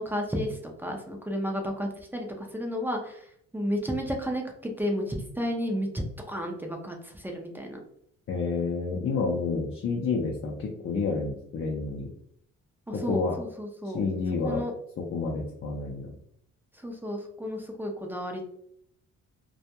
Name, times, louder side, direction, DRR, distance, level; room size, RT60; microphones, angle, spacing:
voice 1, 0.0-3.2 3.5-7.8 12.9-14.0 14.4-14.7 16.8-18.4, equal, 5° right, 1 dB, 0.4 m, -32 dB
voice 2, 8.3-12.1 12.9-13.4 13.9-14.6 15.0-16.1, left 4 dB, 45° left, -1 dB, 0.5 m, -29 dB
2.2 x 2.1 x 2.8 m, 0.70 s
cardioid pair, 90°, 30 cm